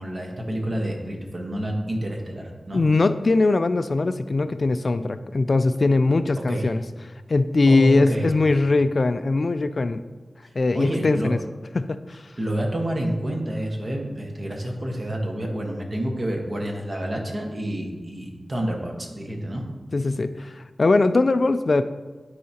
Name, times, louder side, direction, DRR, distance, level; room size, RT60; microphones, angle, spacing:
voice 1, 0.0-2.8 6.5-6.7 7.7-8.3 10.7-11.3 12.4-19.6, right 1 dB, 45° right, 1 dB, 1.3 m, -28 dB
voice 2, 2.7-6.8 7.3-10.0 10.6-11.4 11.7-12.2 19.9-21.8, left 3 dB, 55° left, 11 dB, 0.3 m, -21 dB
12.5 x 4.7 x 2.9 m, 1.3 s
wide cardioid pair, 70°, 0 cm